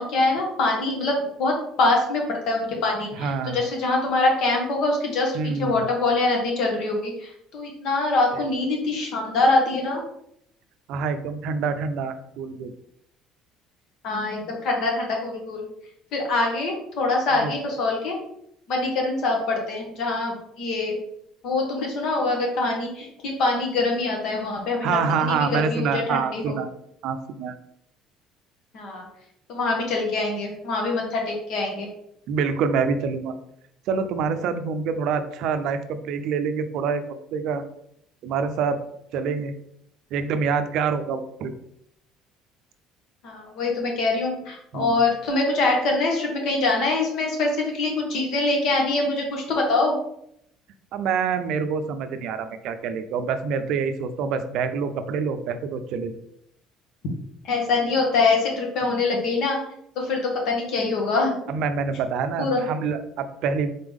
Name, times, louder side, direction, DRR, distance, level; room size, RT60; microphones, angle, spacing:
voice 1, 0.0-7.1 7.5-10.0 14.0-15.6 16.1-18.2 18.7-20.9 21.4-26.6 28.7-29.0 29.5-31.9 43.2-50.0 57.4-59.6 59.9-61.3 62.4-62.6, left 3 dB, 65° left, 0 dB, 1.4 m, -24 dB
voice 2, 3.2-3.6 5.3-5.8 8.3-8.4 10.9-12.7 17.3-17.5 24.8-26.7 27.0-27.6 32.3-33.3 33.9-37.6 38.2-38.8 39.1-39.5 40.1-41.5 44.7-45.0 50.9-56.1 61.5-63.7, right 5 dB, 65° right, 9 dB, 0.4 m, -26 dB
3.9 x 3.5 x 3.5 m, 0.73 s
cardioid pair, 125°, 0 cm